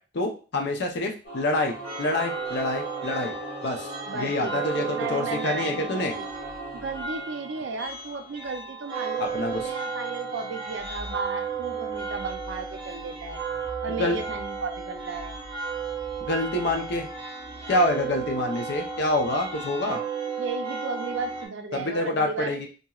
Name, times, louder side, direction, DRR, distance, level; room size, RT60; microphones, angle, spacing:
voice 1, 0.1-3.4 3.6-6.1 9.2-9.6 14.0-14.2 16.3-17.1 17.7-20.0 21.7-22.7, left 1 dB, 65° left, 2 dB, 0.6 m, -27 dB
Singing / Musical instrument, 1.2-8.7, equal, 85° left, 1.2 m, -40 dB
sound 1, 1.8-21.5, right 5 dB, 30° right, 0.8 m, -34 dB
voice 2, 4.1-6.3 6.7-13.4 13.8-15.4 20.4-22.6, right 4 dB, 70° right, 6 dB, 0.4 m, -34 dB
2.9 x 2.6 x 2.3 m, 0.36 s
head